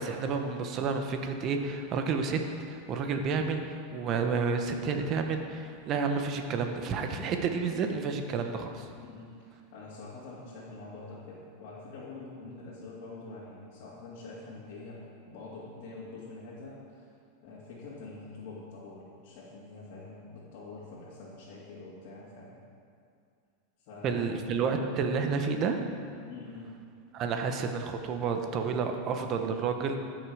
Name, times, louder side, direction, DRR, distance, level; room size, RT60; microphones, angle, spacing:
voice 1, 0.0-2.4 2.7-8.9 24.0-25.8 27.1-30.0, right 5 dB, 35° right, 5 dB, 1.0 m, -30 dB
voice 2, 9.0-17.1 17.4-22.6 23.9-24.5 26.2-26.8, left 3 dB, 55° left, -9 dB, 2.4 m, -45 dB
14.0 x 6.4 x 4.9 m, 2.4 s
supercardioid pair, 140°, 0 cm